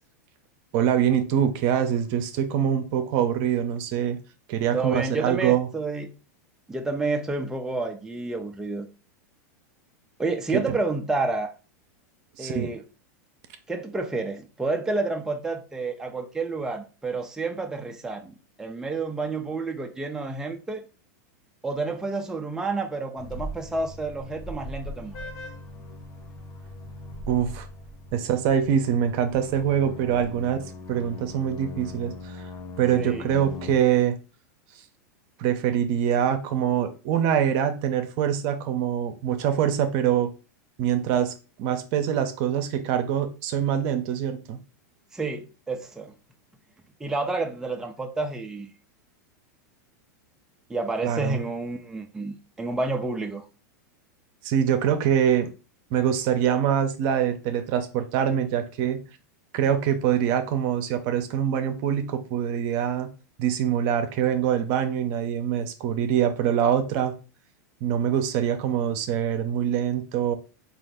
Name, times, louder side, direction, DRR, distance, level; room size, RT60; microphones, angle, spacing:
voice 1, 0.7-4.2 4.5-5.7 10.5-10.8 12.4-12.7 27.3-27.7 28.1-32.4 32.8-34.2 35.4-40.3 40.8-41.3 41.6-44.6 51.0-51.4 54.4-55.5 55.9-59.0 59.5-63.1 63.4-67.1 67.8-70.3, right 9 dB, 50° right, 0.6 m, -24 dB
voice 2, 4.7-6.1 6.7-8.9 10.2-11.5 12.4-12.8 13.7-20.8 21.6-25.3 29.9-30.0 33.0-33.2 45.1-46.1 47.0-48.7 50.7-53.5, right 3 dB, 5° right, 0.4 m, -30 dB
sound 1, 23.2-33.8, left 1 dB, 50° left, 1.0 m, -40 dB
3.8 x 2.4 x 3.5 m
hypercardioid pair, 120°, 9 cm